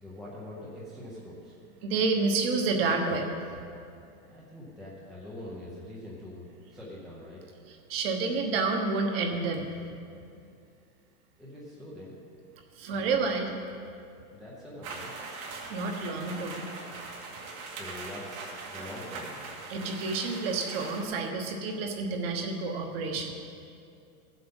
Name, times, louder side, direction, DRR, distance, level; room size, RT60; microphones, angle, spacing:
voice 1, 0.0-1.6 4.2-6.4 6.7-7.4 11.4-12.2 14.3-15.1 17.5-19.5, left 1 dB, ahead, -7 dB, 0.6 m, -44 dB
voice 2, 1.8-3.3 7.7-9.7 12.8-13.5 15.7-16.6 19.7-23.3, right 4 dB, 40° right, 4 dB, 1.3 m, -29 dB
sound 1, 14.8-21.0, right 4 dB, 70° right, 2.3 m, -41 dB
15.0 x 7.8 x 5.4 m, 2.4 s
supercardioid pair, 170°, 43 cm